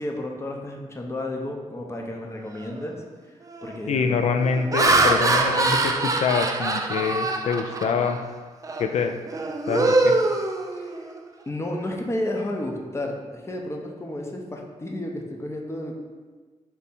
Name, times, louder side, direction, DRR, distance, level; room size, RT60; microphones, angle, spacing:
voice 1, 0.0-3.0 3.6-4.2 10.7-11.1 11.5-16.0, left 1 dB, 20° left, 1 dB, 0.7 m, -32 dB
Laughter, 2.6-2.9 3.5-3.8 4.4-8.2 8.6-8.9 9.3-11.2, right 2 dB, 30° right, 0.4 m, -23 dB
voice 2, 3.9-8.2 8.8-9.1 9.7-10.1, left 5 dB, 65° left, 5 dB, 0.4 m, -25 dB
3.5 x 2.7 x 4.2 m, 1.4 s
cardioid pair, 70°, 12 cm